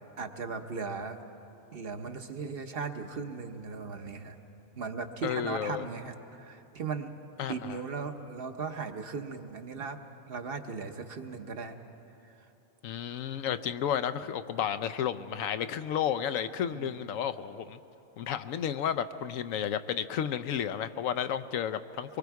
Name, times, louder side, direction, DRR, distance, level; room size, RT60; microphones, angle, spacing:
voice 1, 0.2-1.2 1.7-4.4 4.8-7.1 7.5-10.0 10.3-11.7 12.2-12.3 13.1-13.2 16.7-17.0, right 5 dB, 50° right, 6 dB, 1.0 m, -37 dB
voice 2, 5.2-5.8 7.4-7.8 12.8-17.8 18.2-22.2, left 9 dB, 80° left, 12 dB, 1.0 m, -32 dB
24.0 x 23.0 x 4.7 m, 2.9 s
omnidirectional pair, 1.4 m